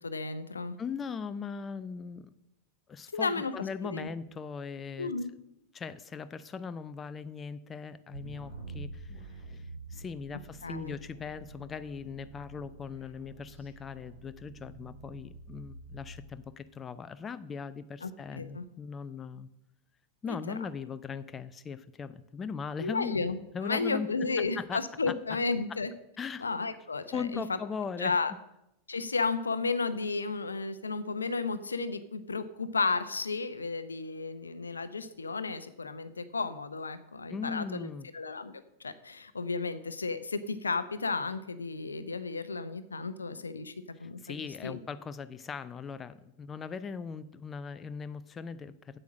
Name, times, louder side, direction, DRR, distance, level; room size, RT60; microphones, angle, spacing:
voice 1, 0.0-0.8 3.1-3.5 3.8-4.1 5.0-5.3 10.6-10.9 18.0-18.6 20.3-20.6 22.8-25.9 26.4-27.6 28.0-28.3 28.9-38.5 38.8-43.7 44.0-44.8, left 4 dB, 75° left, 13 dB, 0.6 m, -33 dB
voice 2, 0.8-2.3 2.9-5.1 5.7-19.5 20.2-23.2 23.5-24.1 24.4-24.8 26.2-26.4 27.1-28.1 37.3-38.1 44.0-49.0, left 6 dB, 20° left, 13 dB, 0.4 m, -39 dB
sound 1, 8.1-16.2, right 2 dB, 80° right, 3.7 m, -47 dB
8.3 x 7.8 x 6.2 m, 0.84 s
figure-of-eight pair, 90°, 0 cm